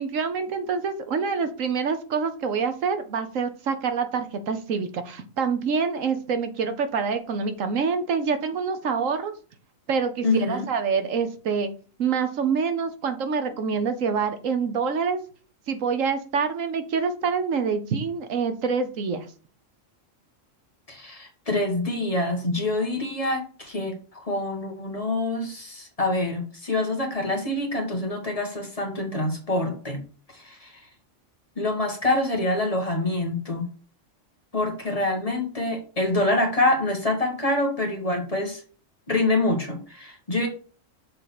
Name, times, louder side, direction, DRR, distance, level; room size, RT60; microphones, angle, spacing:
voice 1, 0.0-9.3 9.9-11.7 12.0-15.2 15.7-19.3, right 5 dB, 80° right, 9 dB, 1.3 m, -26 dB
voice 2, 10.2-10.6 20.9-30.0 30.3-30.7 31.6-33.7 34.5-38.6 39.1-40.5, left 2 dB, 30° left, 2 dB, 1.6 m, -26 dB
6.7 x 3.9 x 5.9 m, 0.39 s
omnidirectional pair, 1.4 m